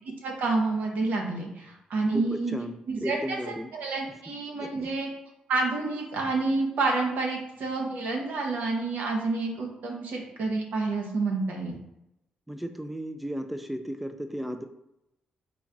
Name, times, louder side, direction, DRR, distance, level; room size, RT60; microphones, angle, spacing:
voice 1, 0.2-2.5 2.9-3.4 3.7-5.1 5.5-11.8, right 3 dB, 80° right, 1 dB, 1.0 m, -29 dB
voice 2, 2.1-2.8 3.0-3.7 4.6-4.9 12.5-14.6, equal, 5° right, 6 dB, 0.3 m, -34 dB
4.0 x 2.4 x 4.6 m, 0.85 s
cardioid pair, 115°, 3 cm